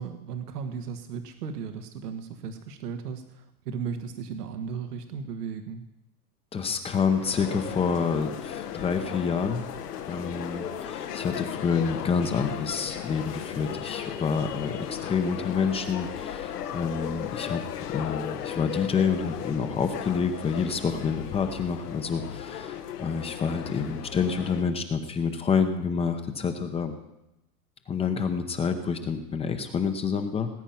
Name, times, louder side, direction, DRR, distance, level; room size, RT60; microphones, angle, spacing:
voice 1, 0.0-5.8, right 6 dB, 85° right, 7 dB, 1.7 m, -36 dB
voice 2, 6.5-9.6 10.1-17.6 17.9-26.9 27.9-30.5, left 6 dB, 15° left, 7 dB, 0.8 m, -28 dB
sound 1, 6.8-24.6, left 9 dB, 90° left, 1.8 m, -36 dB
19.0 x 9.0 x 5.8 m, 0.90 s
supercardioid pair, 145°, 46 cm